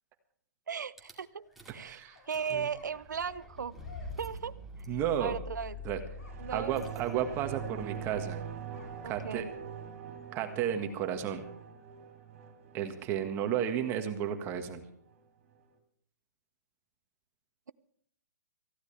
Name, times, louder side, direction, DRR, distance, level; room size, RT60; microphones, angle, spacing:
voice 1, 0.7-1.5 1.7-3.8 4.2-4.5 5.2-5.8 6.4-7.1 9.0-9.5, right 7 dB, 90° right, 15 dB, 0.6 m, -37 dB
Rattle / Car / Engine starting, 1.0-1.1 1.6-1.9 2.2-9.9, left 2 dB, ahead, 2.1 m, -46 dB
sound 1, 1.2-3.0 3.2-4.3 5.3-12.5, left 3 dB, 60° left, 7.1 m, -59 dB
voice 2, 1.8-2.2 2.5-2.7 4.9-5.4 5.8-6.0 6.5-8.4 9.0-9.4 10.3-11.4 12.7-14.8, right 9 dB, 25° right, 7 dB, 1.7 m, -33 dB
sound 2, 6.2-15.2 15.6-15.7, right 9 dB, 45° right, 3.3 m, -44 dB
19.5 x 15.0 x 3.4 m, 0.68 s
hypercardioid pair, 150°, 10 cm